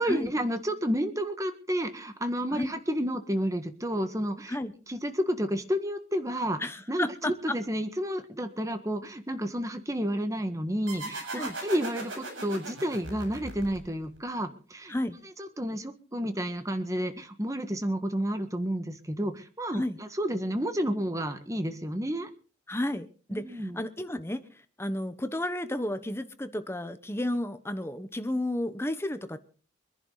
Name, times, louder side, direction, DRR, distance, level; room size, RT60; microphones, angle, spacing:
voice 1, 0.0-4.6 4.9-6.6 6.9-14.9 15.2-22.3 23.3-23.8, equal, 15° right, 1.5 m, -31 dB
voice 2, 6.6-7.6 11.4-11.5 14.9-15.2 19.7-20.0 22.7-24.4 24.8-29.4, left 1 dB, 10° left, 1.0 m, -32 dB
sound 1, 10.9-14.2, right 2 dB, 80° right, 7.4 m, -38 dB
24.5 x 11.0 x 4.0 m
head